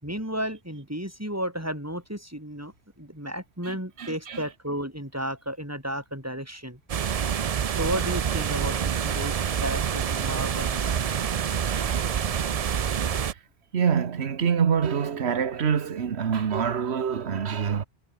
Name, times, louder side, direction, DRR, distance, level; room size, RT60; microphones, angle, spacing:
voice 1, 0.0-6.8 7.7-11.2, equal, 15° right, 6.0 m, -33 dB
voice 2, 3.6-4.4 11.7-12.2 13.3-13.4 13.7-17.8, right 7 dB, 85° right, 1.4 m, -26 dB
sound 1, 6.9-13.3, right 8 dB, 45° right, 0.5 m, -27 dB
omnidirectional pair, 1.1 m